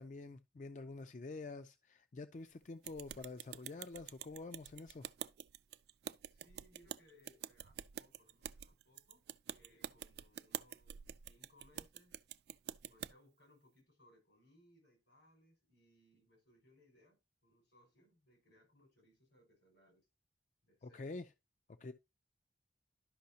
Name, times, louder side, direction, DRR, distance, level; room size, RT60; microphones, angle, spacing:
voice 1, 0.0-5.1 20.8-21.3 21.8-21.9, left 3 dB, 40° left, 0.4 m, -47 dB
sound 1, 2.8-13.1, right 10 dB, 65° right, 0.3 m, -48 dB
voice 2, 6.3-12.2 12.8-20.1 20.6-21.1, left 1 dB, 90° left, 5.2 m, -68 dB
11.5 x 5.5 x 2.7 m
head